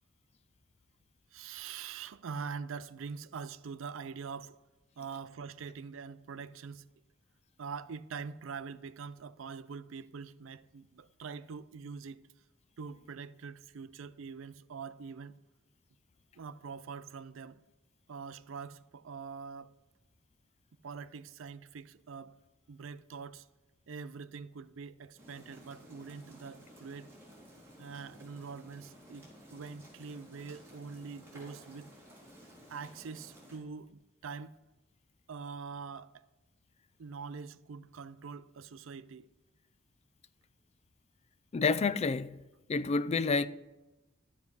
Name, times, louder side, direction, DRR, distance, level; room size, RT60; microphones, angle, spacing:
voice 1, 1.3-4.6 5.0-6.9 7.6-12.3 12.8-15.4 16.4-17.6 18.1-19.7 20.8-22.4 22.7-23.5 23.9-27.1 27.8-31.9 32.7-34.6 35.3-36.3 37.0-39.3, right 5 dB, 75° right, 0.4 m, -44 dB
sound 1, 25.2-33.6, equal, 10° right, 3.5 m, -55 dB
voice 2, 41.5-42.4 42.7-43.5, left 4 dB, 35° left, 0.3 m, -28 dB
12.0 x 7.2 x 5.5 m
head